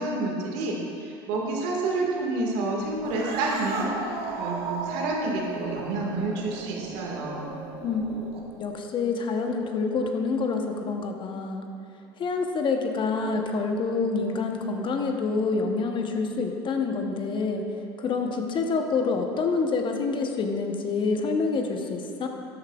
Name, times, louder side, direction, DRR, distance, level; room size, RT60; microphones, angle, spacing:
voice 1, 0.0-3.9 4.4-7.6, right 2 dB, 65° right, -1 dB, 1.8 m, -29 dB
Cat, 3.0-8.6, right 3 dB, 50° right, 1.2 m, -35 dB
voice 2, 8.5-11.7 12.2-17.6 18.0-22.3, left 4 dB, 40° left, 4 dB, 0.9 m, -27 dB
12.5 x 8.6 x 2.4 m, 2.6 s
hypercardioid pair, 85°, 13 cm